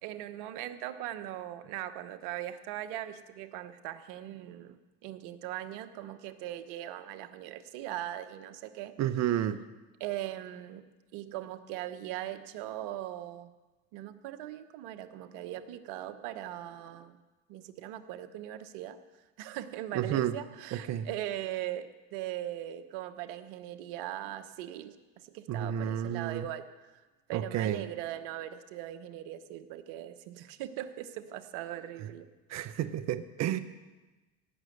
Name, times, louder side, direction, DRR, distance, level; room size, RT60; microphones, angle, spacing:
voice 1, 0.0-8.9 10.0-10.8 11.1-13.5 13.9-17.2 17.5-19.0 19.4-27.0 27.3-32.3 32.7-32.8, right 13 dB, 75° right, 10 dB, 1.1 m, -40 dB
voice 2, 9.0-9.6 19.9-20.4 20.7-21.1 25.5-26.4 27.3-27.9 32.5-33.6, right 11 dB, 55° right, 13 dB, 0.8 m, -31 dB
17.5 x 6.2 x 8.0 m, 1.2 s
supercardioid pair, 90°, 33 cm